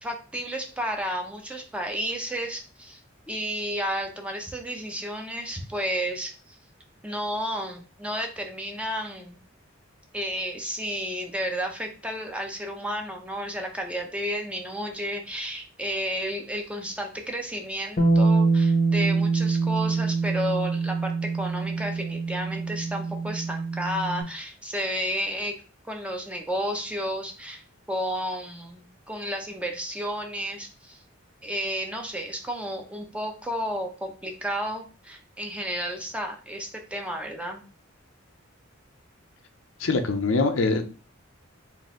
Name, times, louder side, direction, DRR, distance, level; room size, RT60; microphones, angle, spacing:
voice 1, 0.0-3.0 3.3-6.3 7.0-9.4 10.1-25.5 25.9-27.6 27.9-31.0 31.4-37.6, equal, 5° right, 3 dB, 0.7 m, -32 dB
Bass guitar, 18.0-24.2, right 4 dB, 35° left, 0.8 m, -24 dB
voice 2, 39.8-40.8, left 3 dB, 70° left, 7 dB, 0.6 m, -23 dB
4.0 x 2.7 x 3.7 m, 0.34 s
head